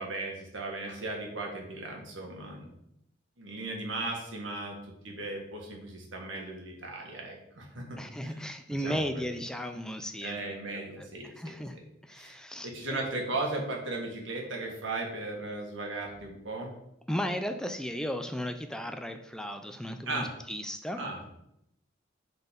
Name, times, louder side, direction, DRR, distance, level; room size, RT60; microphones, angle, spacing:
voice 1, 0.0-2.7 3.4-4.7 5.0-8.5 8.8-9.2 10.2-11.5 12.1-12.4 12.6-16.7 20.0-20.3 21.0-21.3, right 2 dB, 75° right, 1 dB, 1.8 m, -36 dB
voice 2, 8.0-10.4 10.7-12.7 17.1-21.0, equal, 5° left, 7 dB, 0.4 m, -35 dB
7.9 x 4.0 x 5.2 m, 0.80 s
head